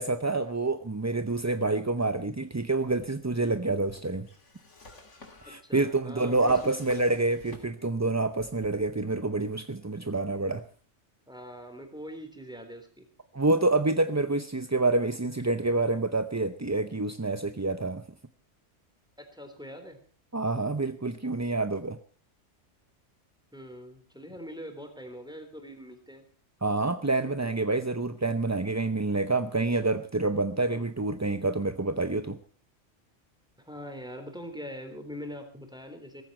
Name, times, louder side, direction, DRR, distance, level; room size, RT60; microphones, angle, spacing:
voice 1, 0.0-4.3 5.4-10.6 13.3-18.0 20.3-22.0 26.6-32.4, right 2 dB, 20° right, 10 dB, 0.5 m, -27 dB
Drawer open or close, 3.0-8.0 8.3-9.2, left 3 dB, 70° left, 3.2 m, -51 dB
voice 2, 5.4-6.8 11.3-13.1 19.2-20.0 23.5-26.2 27.2-27.6 30.6-30.9 33.6-36.2, equal, 5° right, 6 dB, 3.6 m, -43 dB
18.0 x 15.0 x 4.4 m, 0.40 s
omnidirectional pair, 1.3 m